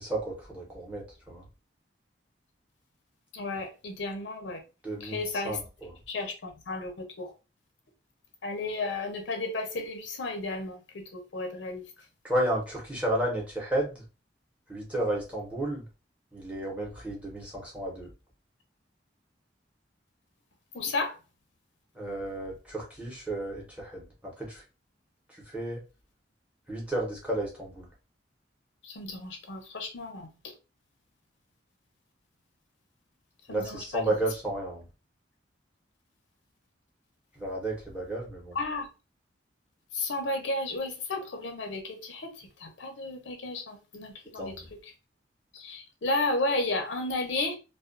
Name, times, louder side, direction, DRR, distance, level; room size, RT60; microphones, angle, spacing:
voice 1, 0.0-1.4 4.8-5.2 5.4-5.9 12.2-14.0 14.7-15.9 16.3-18.1 21.9-24.6 25.5-25.8 26.7-27.9 33.5-34.9 37.4-38.6 44.4-44.7, right 1 dB, 5° right, 0.8 m, -32 dB
voice 2, 3.3-4.6 5.0-5.6 6.1-7.3 8.4-11.9 20.7-21.2 28.8-30.5 33.5-34.1 38.5-38.9 39.9-44.6 44.8-44.9 45.5-47.6, left 2 dB, 85° left, 0.6 m, -33 dB
2.3 x 2.2 x 2.5 m
head